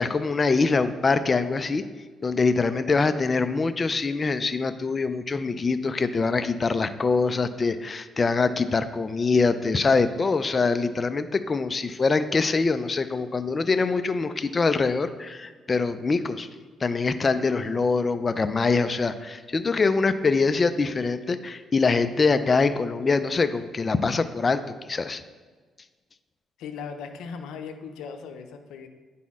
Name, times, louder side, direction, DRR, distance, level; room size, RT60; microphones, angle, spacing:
voice 1, 0.0-1.8 2.2-16.5 16.8-24.6 24.9-25.2, left 4 dB, 30° left, 10 dB, 0.4 m, -24 dB
voice 2, 26.6-28.9, left 6 dB, 85° left, 6 dB, 0.6 m, -38 dB
10.0 x 4.2 x 3.6 m, 1.4 s
cardioid pair, 90°, 0 cm